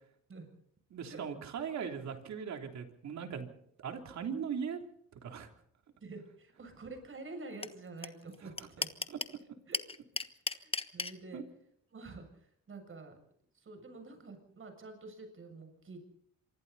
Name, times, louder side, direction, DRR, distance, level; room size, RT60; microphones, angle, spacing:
voice 1, 0.9-3.5 3.8-4.8 5.2-5.5 8.4-8.7 9.1-9.2 11.3-11.4, right 7 dB, 65° right, 5 dB, 3.4 m, -39 dB
voice 2, 6.0-8.9 9.7-9.8 10.5-11.4 11.9-13.2 13.5-16.0, right 3 dB, 45° right, 5 dB, 7.4 m, -48 dB
sound 1, 7.6-7.7 8.0-8.1 8.3-9.3 9.7-11.1, left 3 dB, 20° left, 1.3 m, -33 dB
26.5 x 24.5 x 4.2 m, 0.69 s
cardioid pair, 90°, 30 cm